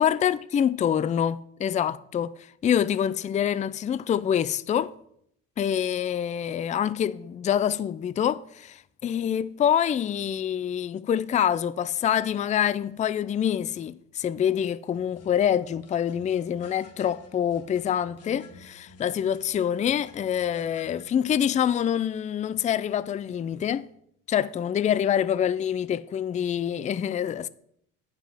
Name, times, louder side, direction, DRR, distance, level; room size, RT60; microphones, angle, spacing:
voice 1, 0.0-2.3 2.6-4.9 5.6-23.9 24.3-27.5, left 9 dB, 20° left, 0.4 m, -26 dB
sound 1, 14.9-21.1, left 4 dB, 45° left, 1.5 m, -51 dB
9.2 x 5.7 x 6.1 m
supercardioid pair, 85°, 34 cm